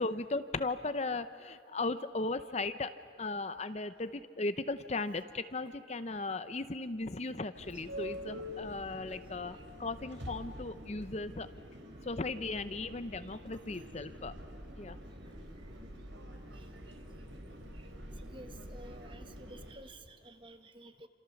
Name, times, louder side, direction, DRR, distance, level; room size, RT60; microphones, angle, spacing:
voice 1, 0.0-2.9 3.2-11.5 12.0-14.3 14.8-15.0, left 3 dB, 35° left, 11 dB, 0.7 m, -37 dB
sound 1, 7.5-19.7, equal, 75° right, 4.0 m, -47 dB
voice 2, 18.3-21.1, right 1 dB, 25° right, 8 dB, 1.3 m, -52 dB
28.5 x 27.0 x 7.1 m, 2.5 s
head